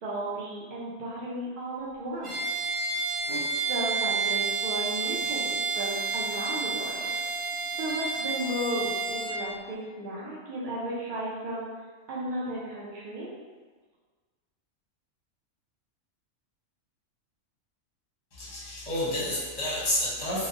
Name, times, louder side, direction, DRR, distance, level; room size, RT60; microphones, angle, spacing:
voice 1, 0.0-2.4 3.3-7.1 7.8-11.7 12.1-13.3, right 1 dB, 75° right, -6 dB, 0.4 m, -34 dB
Bowed string instrument, 2.2-9.4, right 4 dB, 55° right, 0.8 m, -30 dB
voice 2, 18.3-20.5, left 1 dB, 30° left, -10 dB, 0.7 m, -30 dB
2.8 x 2.0 x 2.5 m, 1.4 s
omnidirectional pair, 1.4 m